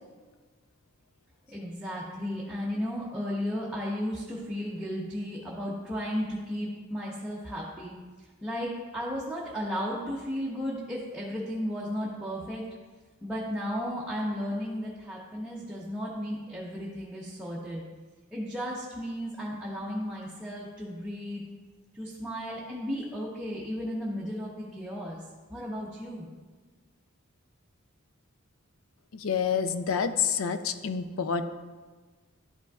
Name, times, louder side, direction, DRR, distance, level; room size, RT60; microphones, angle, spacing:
voice 1, 1.5-7.9 8.4-12.6 13.2-17.8 18.3-21.4 21.9-25.2 25.5-26.3, equal, 5° right, -6 dB, 0.8 m, -34 dB
voice 2, 29.1-31.5, left 6 dB, 65° left, 10 dB, 0.4 m, -28 dB
11.5 x 5.2 x 2.3 m, 1.4 s
head